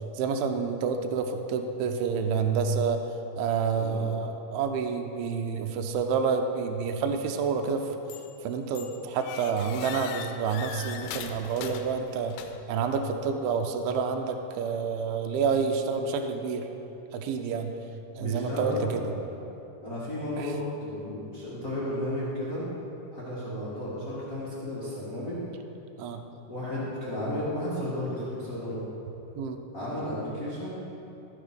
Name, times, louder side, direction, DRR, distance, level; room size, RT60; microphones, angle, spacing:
voice 1, 0.2-3.0 3.4-7.9 8.4-12.4 12.7-16.7 17.1-17.7 18.2-19.0 20.4-20.5 26.0-26.2 29.4-29.6, right 5 dB, 80° right, 5 dB, 2.3 m, -28 dB
sound 1, 8.1-8.4 8.8-12.8, left 8 dB, 85° left, 2.5 m, -41 dB
voice 2, 18.2-19.3 19.8-22.7 23.1-25.4 26.5-28.8 29.7-30.7, left 1 dB, 50° left, -10 dB, 0.9 m, -33 dB
13.5 x 6.3 x 5.1 m, 3.0 s
omnidirectional pair, 4.7 m